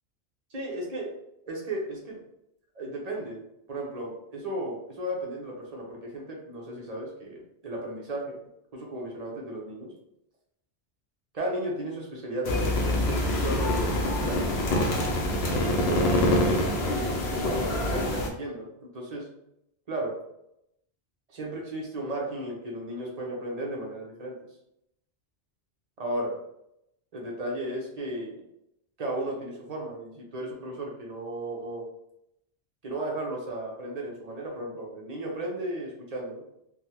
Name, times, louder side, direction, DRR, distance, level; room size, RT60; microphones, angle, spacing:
voice 1, 0.5-1.2 1.5-2.2 2.7-3.4 3.7-8.4 8.7-9.9 11.3-14.5 15.5-19.3 19.9-20.1 21.3-24.3 26.0-26.4 27.1-28.4 29.0-31.8 32.8-36.4, right 1 dB, 40° right, -2 dB, 0.8 m, -34 dB
sound 1, 12.4-18.3, left 1 dB, 70° left, 0.8 m, -25 dB
3.4 x 2.2 x 2.9 m, 0.80 s
omnidirectional pair, 1.2 m